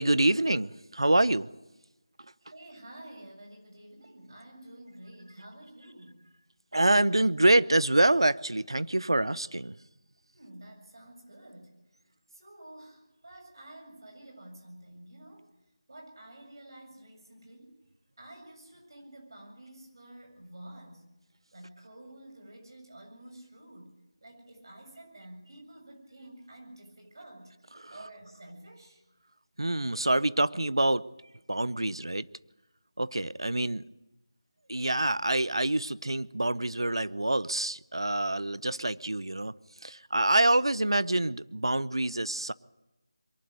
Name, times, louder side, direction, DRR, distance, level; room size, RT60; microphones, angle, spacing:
voice 1, 0.0-1.5 6.7-9.8 27.7-27.9 29.6-31.0 31.5-32.3 33.0-33.9 34.7-39.6 39.8-42.5, right 1 dB, 80° right, 19 dB, 0.8 m, -26 dB
voice 2, 2.5-6.2 10.3-11.7 12.3-15.5 15.9-17.7 18.2-21.1 21.5-27.5 27.9-29.0, right 1 dB, 55° right, 2 dB, 7.4 m, -50 dB
23.0 x 12.0 x 9.6 m, 0.99 s
figure-of-eight pair, 165°, 3 cm